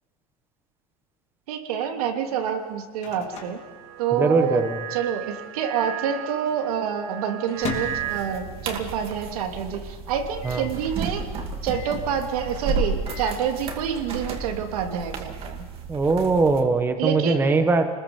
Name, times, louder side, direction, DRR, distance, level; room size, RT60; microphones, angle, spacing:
voice 1, 1.5-3.6 4.0-4.6 4.9-11.3 11.6-15.7 17.0-17.6, right 8 dB, 90° right, 4 dB, 3.0 m, -27 dB
Microwave oven, 2.4-4.6 4.8-4.9 5.2-5.7 6.2-8.9 9.3-9.4 9.6-9.7 10.4-10.8 11.7-12.1 12.8-13.4, left 7 dB, 35° left, 3.2 m, -39 dB
sound 1, 3.3-8.2, right 10 dB, 70° right, 4.3 m, -35 dB
voice 2, 4.2-4.8 10.4-10.6 15.9-17.9, right 3 dB, 10° right, 7 dB, 1.3 m, -21 dB
sound 2, 7.6-16.6, right 4 dB, 30° right, 2.3 m, -33 dB
28.5 x 20.5 x 7.2 m, 1.5 s
supercardioid pair, 160°, 19 cm